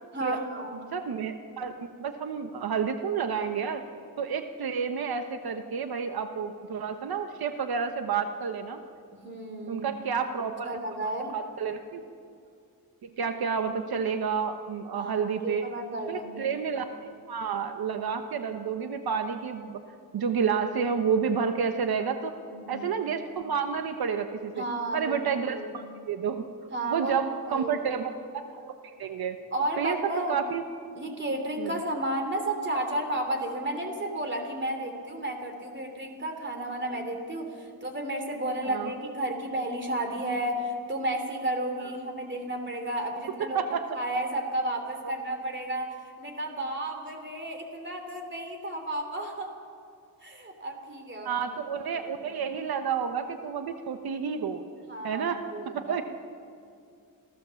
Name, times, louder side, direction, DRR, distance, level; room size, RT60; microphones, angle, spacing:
voice 1, 0.1-0.8 9.2-9.8 10.6-11.3 14.9-16.4 22.5-22.9 24.5-25.2 25.5-25.8 26.7-27.1 27.5-27.9 29.5-30.4 30.9-49.5 50.2-51.4 52.1-52.2 54.9-56.0, right 1 dB, 30° right, 4 dB, 3.1 m, -32 dB
voice 2, 0.9-3.8 4.2-8.8 9.7-10.8 11.3-12.0 13.0-15.6 16.1-19.8 20.1-22.3 22.7-24.6 24.9-26.4 26.9-29.4 29.8-30.6 31.6-31.7 38.6-38.9 43.4-43.8 51.2-54.6 55.0-55.4 55.7-56.0, right 6 dB, 80° right, 7 dB, 1.1 m, -30 dB
27.0 x 15.5 x 7.0 m, 2.4 s
wide cardioid pair, 155°, 36 cm